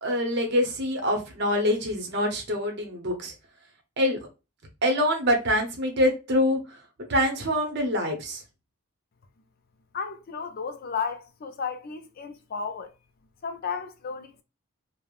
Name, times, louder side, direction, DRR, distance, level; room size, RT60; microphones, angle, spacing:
voice 1, 0.0-3.3 4.0-4.2 4.8-6.8 7.1-8.4, left 1 dB, 50° right, 0.8 m, -25 dB
voice 2, 9.9-12.9 13.4-14.4, left 5 dB, 45° left, 0.3 m, -33 dB
3.3 x 2.0 x 2.4 m
head